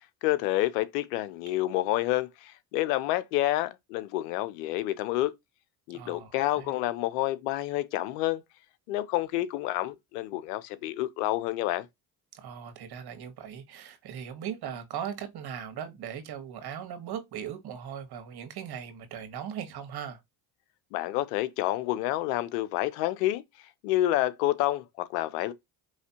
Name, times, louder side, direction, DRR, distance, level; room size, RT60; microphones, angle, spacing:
voice 1, 0.2-5.3 5.9-8.4 8.9-11.9 20.9-23.4 23.8-25.5, left 15 dB, 90° left, 0.7 m, -28 dB
voice 2, 5.9-6.7 12.3-20.2, right 8 dB, 55° right, 1.6 m, -39 dB
4.8 x 3.1 x 2.8 m
supercardioid pair, 70°, 46 cm